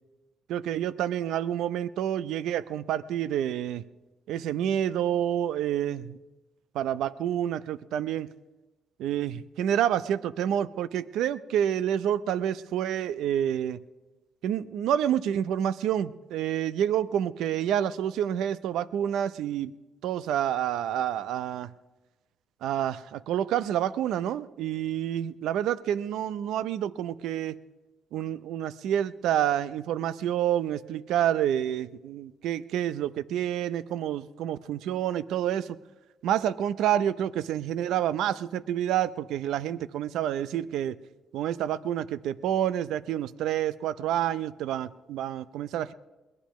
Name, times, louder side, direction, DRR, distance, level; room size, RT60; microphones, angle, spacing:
voice 1, 0.5-3.8 4.3-6.2 6.7-8.3 9.0-13.8 14.4-19.7 20.0-21.7 22.6-27.6 28.1-35.8 36.2-41.0 41.3-45.9, right 10 dB, 85° right, 16 dB, 0.5 m, -28 dB
21.5 x 19.5 x 3.1 m, 1.1 s
cardioid pair, 90°, 0 cm